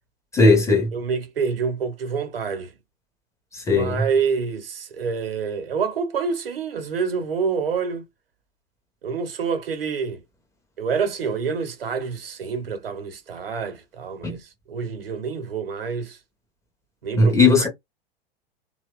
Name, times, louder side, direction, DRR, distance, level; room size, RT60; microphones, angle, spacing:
voice 1, 0.3-0.9 3.5-4.1 14.2-14.4 17.2-17.7, left 3 dB, 10° left, 0.6 m, -17 dB
voice 2, 0.9-2.7 3.7-8.0 9.0-10.2 10.8-16.2 17.0-17.7, right 5 dB, 65° right, 0.8 m, -27 dB
2.9 x 2.2 x 2.2 m
figure-of-eight pair, 95°, 31 cm